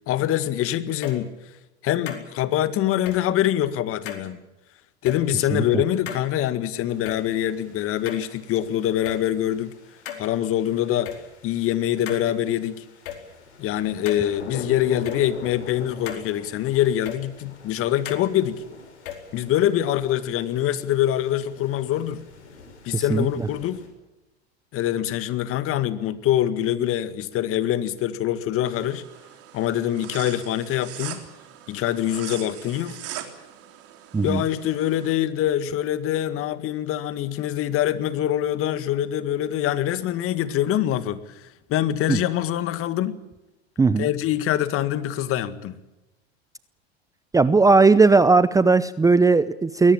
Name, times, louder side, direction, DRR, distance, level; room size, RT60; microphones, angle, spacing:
voice 1, 0.1-1.3 1.8-4.4 5.0-9.7 10.2-11.1 11.4-12.8 13.6-18.6 19.3-22.2 22.9-23.8 24.7-29.0 29.5-31.2 31.7-33.0 34.2-43.2 44.0-45.7, left 12 dB, 40° left, 13 dB, 1.9 m, -24 dB
sound 1, 0.9-1.2 2.1-2.2 3.1-3.2 4.1-4.3 5.1-5.2 6.1-6.2 7.1-7.2 8.1-8.6 9.1-9.2 10.1-10.3 11.1-11.2 12.1-12.2 13.1-13.2 14.1-14.3 15.1-15.2 16.1-16.2 17.1-17.2 18.1-18.3 19.1-19.2, left 11 dB, 65° left, 4.5 m, -34 dB
sound 2, 6.9-23.9, left 4 dB, 85° left, 6.3 m, -46 dB
voice 2, 22.9-23.3 34.1-34.4 42.1-42.2 43.8-44.1 47.3-49.9, right 4 dB, 10° right, 16 dB, 0.7 m, -17 dB
sound 3, 28.6-35.1, right 11 dB, 45° right, 3.7 m, -41 dB
22.0 x 18.0 x 8.9 m, 0.99 s
hypercardioid pair, 95°, 33 cm